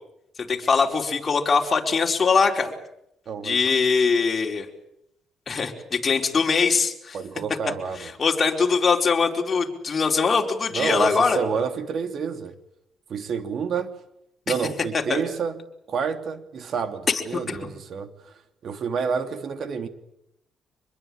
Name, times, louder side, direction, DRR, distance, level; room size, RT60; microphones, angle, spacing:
voice 1, 0.5-2.7 3.4-4.7 5.5-7.2 8.0-11.4 15.1-15.2 17.1-17.2 17.5-17.6, left 5 dB, 35° left, 1 dB, 4.8 m, -22 dB
voice 2, 3.3-3.6 7.1-8.1 10.7-12.5 13.1-13.9 14.5-15.6 15.9-18.1 18.6-19.9, right 6 dB, 60° right, 8 dB, 3.0 m, -29 dB
25.5 x 22.0 x 8.9 m, 0.79 s
cardioid pair, 90°, 0 cm